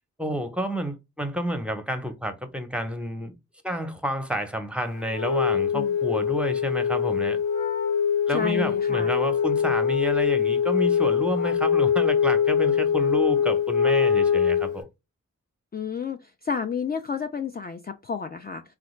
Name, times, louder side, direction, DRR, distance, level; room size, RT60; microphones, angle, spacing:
voice 1, 0.2-3.3 3.6-7.4 8.3-14.9, equal, 5° right, 0.7 m, -30 dB
Wind instrument woodwind instrument, 5.1-14.8, left 7 dB, 75° left, 1.2 m, -23 dB
voice 2, 8.3-9.1 15.7-16.2 16.4-18.6, left 6 dB, 30° left, 0.4 m, -31 dB
3.2 x 2.4 x 3.1 m
cardioid pair, 45°, 31 cm